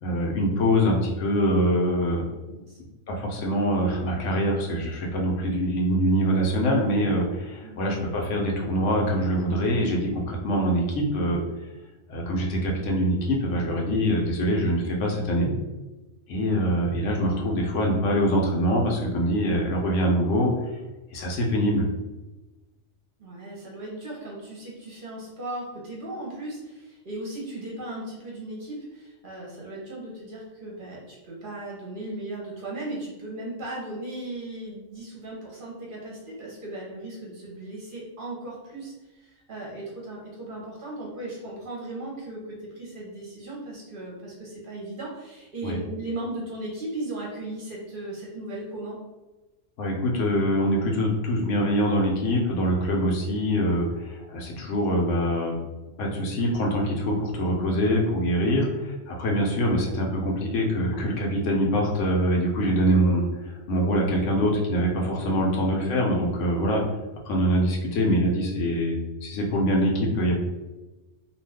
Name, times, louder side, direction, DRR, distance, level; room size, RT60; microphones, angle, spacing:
voice 1, 0.0-2.2 3.1-11.4 12.1-15.5 16.3-20.5 21.1-21.9 45.6-45.8 49.8-55.5 56.0-63.2 63.7-66.8 67.3-70.4, equal, 75° left, -1 dB, 1.0 m, -24 dB
voice 2, 2.4-2.8 7.6-7.8 16.5-16.7 23.2-49.0 58.4-58.7 65.4-65.6, right 1 dB, 50° right, -4 dB, 0.7 m, -37 dB
2.5 x 2.3 x 3.3 m, 1.1 s
omnidirectional pair, 1.3 m